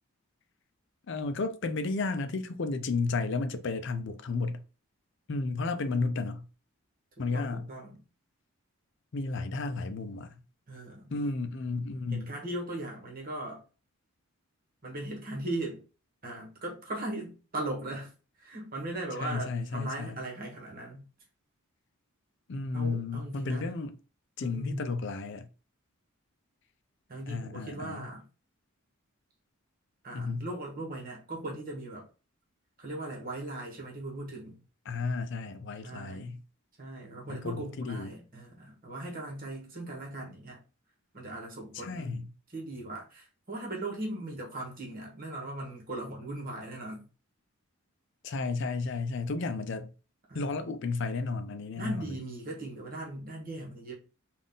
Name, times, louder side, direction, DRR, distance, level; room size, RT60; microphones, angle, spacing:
voice 1, 1.1-4.6 5.3-6.5 7.2-7.7 9.1-10.4 11.1-12.3 19.2-20.2 22.5-24.0 24.4-25.5 27.3-28.1 30.1-30.5 34.9-36.4 37.3-38.2 41.7-42.3 48.2-49.9 50.3-52.2, left 3 dB, 55° left, 0.5 m, -33 dB
voice 2, 7.2-8.0 10.7-11.2 12.1-13.6 14.8-15.8 16.2-18.1 18.4-21.0 22.7-23.7 24.4-24.9 27.1-28.2 30.0-32.1 32.8-34.6 35.8-36.3 36.8-40.6 41.1-42.2 42.5-47.0 50.3-50.5 51.8-53.9, right 1 dB, 40° right, 1.2 m, -38 dB
3.6 x 2.5 x 3.8 m
head